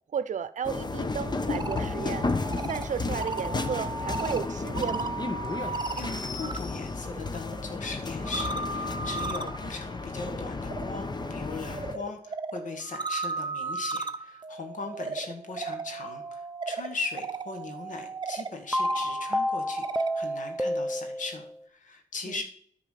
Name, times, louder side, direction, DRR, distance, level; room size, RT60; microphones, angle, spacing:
voice 1, 0.1-2.2 2.7-5.2 22.3-22.4, right 7 dB, 75° right, 0.6 m, -33 dB
sound 1, 0.6-12.0, left 3 dB, 35° left, 0.9 m, -33 dB
sound 2, 1.3-6.6 6.9-20.2, right 3 dB, 35° right, 0.7 m, -36 dB
voice 2, 5.5-22.4, left 4 dB, 85° left, 1.7 m, -39 dB
sound 3, 18.7-21.6, equal, 5° right, 0.4 m, -29 dB
9.7 x 4.8 x 6.6 m
cardioid pair, 65°, 13 cm